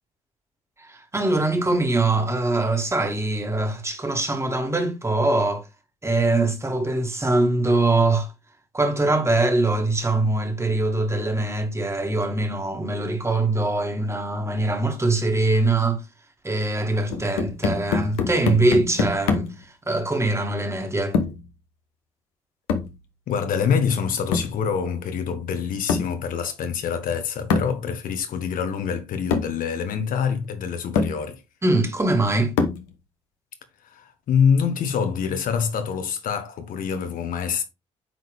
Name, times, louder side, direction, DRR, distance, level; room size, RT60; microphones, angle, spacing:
voice 1, 0.8-5.6 6.0-8.3 8.7-16.0 16.4-19.5 19.9-21.2 31.6-32.6, right 2 dB, 15° right, 1.9 m, -22 dB
sound 1, 17.1-19.6 21.1-21.5 22.7-23.0 24.3-24.6 25.9-26.2 27.5-27.8 28.8-28.9 29.3-29.6 30.4-30.5 31.0-31.2 32.6-32.9, left 5 dB, 75° left, 1.1 m, -25 dB
voice 2, 23.3-31.4 33.9-37.6, left 7 dB, 60° left, 1.5 m, -25 dB
9.3 x 4.0 x 3.5 m
hypercardioid pair, 50°, 16 cm